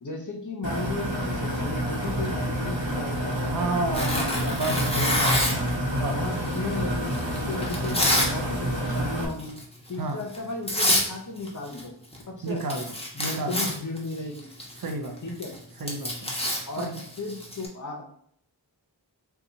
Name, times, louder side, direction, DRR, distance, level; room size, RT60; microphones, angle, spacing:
voice 1, 0.0-5.5 6.1-9.5 9.9-11.9 12.3-12.8 13.1-14.3 15.2-15.5 16.7-16.9 17.2-18.0, left 2 dB, 45° left, 1 dB, 0.7 m, -35 dB
sound 1, 0.6-9.3, equal, 85° right, 1.0 m, -29 dB
voice 2, 3.4-5.5 5.9-6.2 10.0-10.2 12.4-12.9 13.2-13.7 14.8-15.2 15.8-16.4 16.8-17.0, right 2 dB, 55° right, 5 dB, 0.6 m, -31 dB
Tearing, 3.9-5.7 6.5-8.3 8.7-9.0 9.4-9.6 10.3-10.4 10.7-11.1 11.4-12.2 12.5-17.7, left 1 dB, 15° left, 0.9 m, -27 dB
2.8 x 2.3 x 3.9 m, 0.66 s
wide cardioid pair, 40°, 44 cm